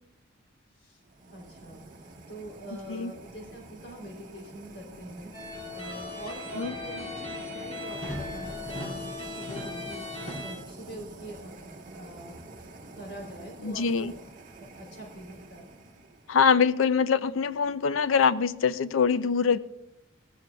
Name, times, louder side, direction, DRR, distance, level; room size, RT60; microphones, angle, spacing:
sound 1, 1.0-16.4, right 2 dB, 40° right, 1.6 m, -47 dB
voice 1, 1.3-11.5 11.9-12.3 12.9-14.2 14.6-15.7, right 1 dB, 60° left, 3.4 m, -44 dB
sound 2, 5.3-10.5, left 2 dB, 30° left, 4.1 m, -37 dB
voice 2, 13.6-14.1 16.3-19.6, left 6 dB, 85° left, 0.5 m, -24 dB
19.0 x 15.0 x 2.3 m
head